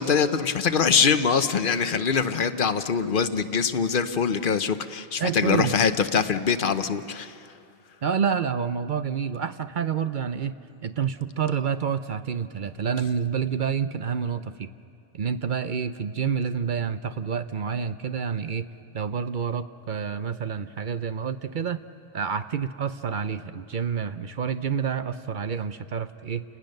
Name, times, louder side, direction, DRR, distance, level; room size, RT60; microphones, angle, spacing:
voice 1, 0.0-7.3, left 6 dB, 55° left, 10 dB, 1.0 m, -23 dB
voice 2, 5.2-5.7 8.0-10.5 10.8-14.7 15.1-18.7 18.9-21.8 22.1-26.4, right 7 dB, 55° right, 11 dB, 0.7 m, -28 dB
29.5 x 19.0 x 6.6 m, 2.5 s
omnidirectional pair, 1.1 m